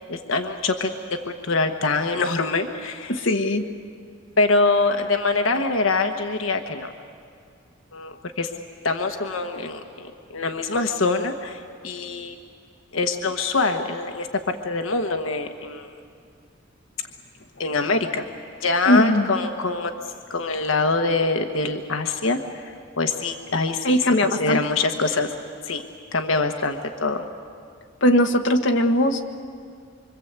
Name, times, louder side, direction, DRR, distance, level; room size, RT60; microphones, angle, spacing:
voice 1, 0.1-0.9 1.4-3.1 4.4-6.9 7.9-8.5 8.8-12.4 12.9-15.9 17.6-18.2 18.6-19.9 20.3-24.0 24.4-25.3 25.7-25.8 26.1-27.2, left 3 dB, 90° left, 5 dB, 1.2 m, -24 dB
voice 2, 3.1-3.7 18.9-19.3 23.8-24.6 28.0-29.2, left 1 dB, 65° left, 4 dB, 1.5 m, -19 dB
25.5 x 25.0 x 8.2 m, 2.2 s
head